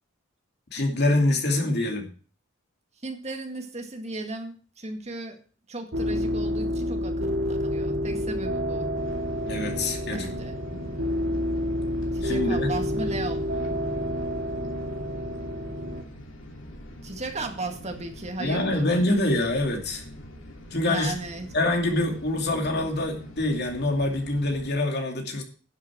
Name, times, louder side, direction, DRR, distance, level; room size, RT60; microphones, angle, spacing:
voice 1, 0.7-2.1 9.5-10.3 10.7-10.9 12.2-12.7 18.4-20.0 20.7-21.1 21.5-25.4, left 1 dB, 55° left, 3 dB, 2.7 m, -25 dB
voice 2, 3.0-5.4 5.7-8.9 10.1-10.6 12.1-13.7 17.0-18.9 20.8-21.5, right 2 dB, 35° right, 4 dB, 2.0 m, -35 dB
sound 1, 5.9-16.0, equal, 65° right, 2.7 m, -29 dB
sound 2, 8.9-24.8, equal, 70° left, 2.7 m, -44 dB
11.0 x 7.5 x 6.1 m, 0.40 s
head